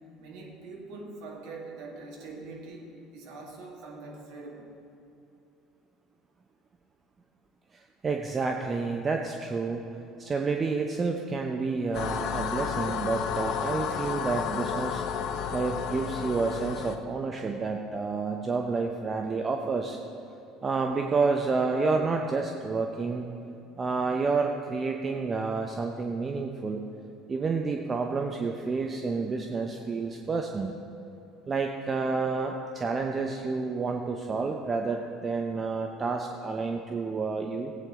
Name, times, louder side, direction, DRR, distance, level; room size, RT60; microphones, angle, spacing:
voice 1, 0.2-4.7, right 3 dB, 65° right, -1 dB, 2.0 m, -43 dB
voice 2, 7.7-9.8 10.2-15.0 15.5-20.0 20.6-23.3 23.8-26.8 27.3-30.7 31.5-37.7, right 4 dB, 30° right, 3 dB, 0.8 m, -29 dB
sound 1, 11.9-17.0, left 7 dB, 60° left, 0.7 m, -32 dB
15.5 x 8.8 x 3.7 m, 2.8 s
hypercardioid pair, 65°, 0 cm